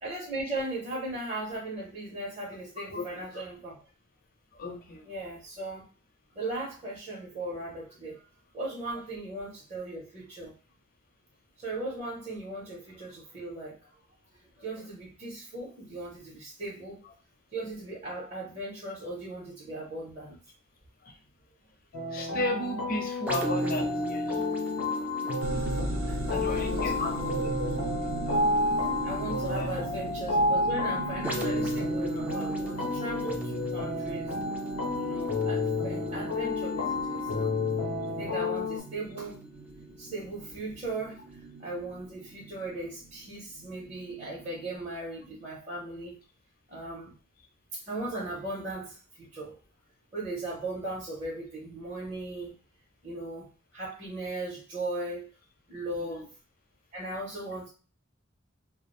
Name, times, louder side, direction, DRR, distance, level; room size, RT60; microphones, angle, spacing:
voice 1, 0.0-3.8 5.0-5.9 6.3-8.2 8.5-10.5 11.6-13.9 14.6-17.0 17.5-20.4 26.1-27.9 29.0-34.3 35.0-37.5 38.1-39.4 40.0-46.2 46.7-47.2 47.7-49.6 50.1-52.6 53.0-55.3 55.7-56.3 56.9-57.7, right 2 dB, 35° right, -7 dB, 0.7 m, -37 dB
voice 2, 4.5-5.0 21.0-21.1 22.0-24.5 24.8-24.9 25.6-25.7 26.3-27.1 29.5-29.7 34.9-35.1 56.0-56.2, left 2 dB, 45° left, 2 dB, 0.6 m, -34 dB
sound 1, 21.9-38.8, left 2 dB, 90° left, 0.7 m, -31 dB
sound 2, 23.3-40.8 41.3-41.5, right 1 dB, 5° right, 0.3 m, -37 dB
sound 3, 25.4-44.8, right 2 dB, 80° right, 0.5 m, -40 dB
2.3 x 2.0 x 3.0 m, 0.36 s
head